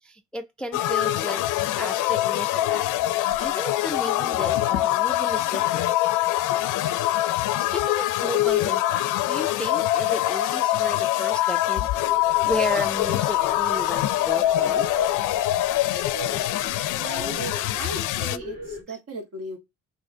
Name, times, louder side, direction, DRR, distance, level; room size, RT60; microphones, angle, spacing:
voice 1, 0.0-2.9 3.1-5.9 7.6-11.8 12.2-14.8 18.9-19.0, left 1 dB, 5° left, 0.3 m, -34 dB
sound 1, 0.7-18.4, left 14 dB, 85° left, 0.5 m, -24 dB
sound 2, 11.9-18.8, equal, 30° right, 1.6 m, -39 dB
voice 2, 16.9-17.4 17.8-19.6, right 2 dB, 55° right, 1.7 m, -37 dB
6.3 x 2.8 x 2.7 m
cardioid pair, 90°, 30 cm